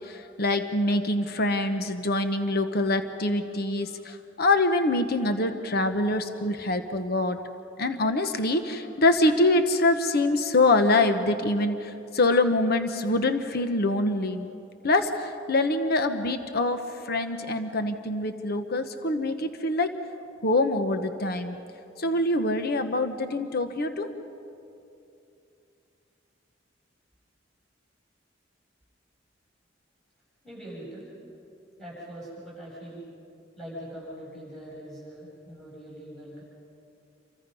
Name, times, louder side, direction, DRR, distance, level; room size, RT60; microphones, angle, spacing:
voice 1, 0.1-7.4 7.8-14.5 14.8-16.8 17.1-19.9 20.4-21.6 22.0-24.1, left 2 dB, 55° left, 8 dB, 1.1 m, -25 dB
voice 2, 30.4-31.1 31.8-33.0 33.6-36.4, equal, ahead, -7 dB, 7.5 m, -42 dB
29.0 x 24.5 x 5.5 m, 2.7 s
head